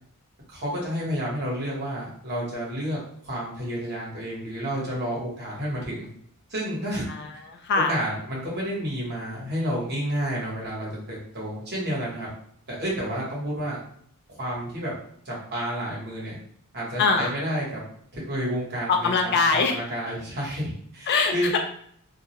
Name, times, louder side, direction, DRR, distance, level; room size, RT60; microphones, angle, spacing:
voice 1, 0.5-6.1 6.5-7.4 7.9-12.3 12.7-13.8 14.4-14.9 15.2-16.3 16.7-17.8 18.1-21.5, equal, 50° right, -5 dB, 1.0 m, -30 dB
voice 2, 7.1-7.9 17.0-17.3 18.9-19.8 21.1-21.6, left 4 dB, 50° left, 3 dB, 0.4 m, -23 dB
2.3 x 2.1 x 2.9 m, 0.65 s
head